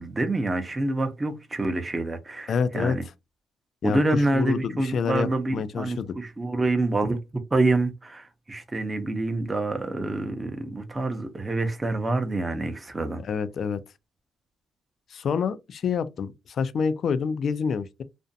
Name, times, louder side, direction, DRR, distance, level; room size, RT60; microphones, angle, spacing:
voice 1, 0.0-3.0 3.8-13.2, right 2 dB, 20° right, 0.6 m, -27 dB
voice 2, 2.5-3.0 3.8-6.1 13.2-13.8 15.1-18.0, left 6 dB, 60° left, 0.4 m, -27 dB
2.5 x 2.1 x 2.6 m
cardioid pair, 90°, 0 cm